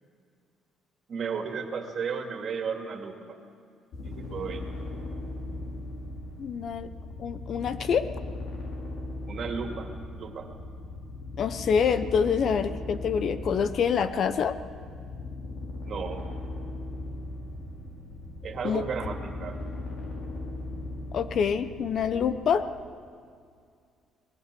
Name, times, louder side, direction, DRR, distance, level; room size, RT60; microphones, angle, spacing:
voice 1, 1.1-3.4 4.0-4.6 9.3-9.9 10.2-10.5 15.8-16.3 18.4-19.7, right 6 dB, 45° right, 4 dB, 2.5 m, -34 dB
sound 1, 3.9-22.4, left 2 dB, 65° left, 5.7 m, -38 dB
voice 2, 6.4-6.9 7.2-8.1 11.4-14.6 18.6-18.8 21.1-22.6, left 7 dB, 50° left, 12 dB, 0.9 m, -26 dB
24.0 x 20.5 x 6.9 m, 2.2 s
cardioid pair, 135°, 0 cm